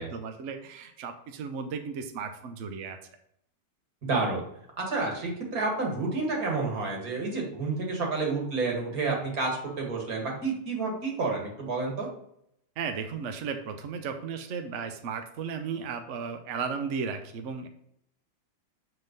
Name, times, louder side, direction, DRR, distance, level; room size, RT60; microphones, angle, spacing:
voice 1, 0.0-3.0 12.8-17.7, right 6 dB, 65° right, 7 dB, 0.7 m, -35 dB
voice 2, 4.0-4.4 4.8-12.1, right 3 dB, 50° right, 0 dB, 2.2 m, -30 dB
8.0 x 3.8 x 5.2 m, 0.73 s
omnidirectional pair, 2.0 m